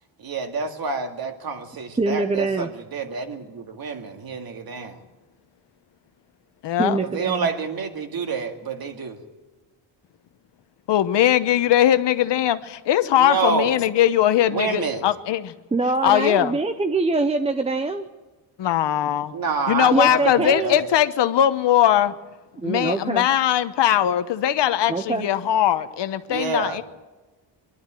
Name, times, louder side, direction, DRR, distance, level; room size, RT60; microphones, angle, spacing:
voice 1, 0.2-5.0 7.1-9.2 13.2-13.9 14.5-15.1 19.3-20.9 26.3-26.7, right 4 dB, 50° right, 4 dB, 2.4 m, -28 dB
voice 2, 2.0-2.7 6.8-7.5 15.7-18.0 19.9-20.8 22.6-23.3 24.9-25.3, right 3 dB, 15° right, 7 dB, 0.6 m, -24 dB
voice 3, 6.6-7.0 10.9-15.5 16.0-16.5 18.6-19.3 19.7-22.1 22.6-26.8, left 11 dB, 60° left, 12 dB, 1.0 m, -20 dB
23.0 x 12.5 x 9.1 m, 1.2 s
cardioid pair, 140°, 47 cm